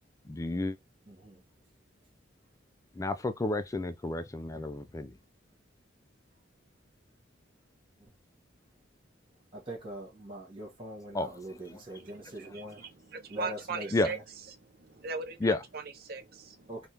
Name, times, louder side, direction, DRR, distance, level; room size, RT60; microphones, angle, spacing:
voice 1, 0.3-0.8 3.0-5.2 11.1-11.3 11.7-11.8 13.9-14.1 15.4-15.6, left 2 dB, 15° left, 0.3 m, -31 dB
voice 2, 1.1-1.4 9.5-12.8 13.3-14.2 16.7-16.9, equal, 25° right, 1.1 m, -42 dB
voice 3, 12.0-14.2 14.6-16.7, right 4 dB, 50° right, 0.6 m, -40 dB
3.5 x 2.4 x 2.7 m
head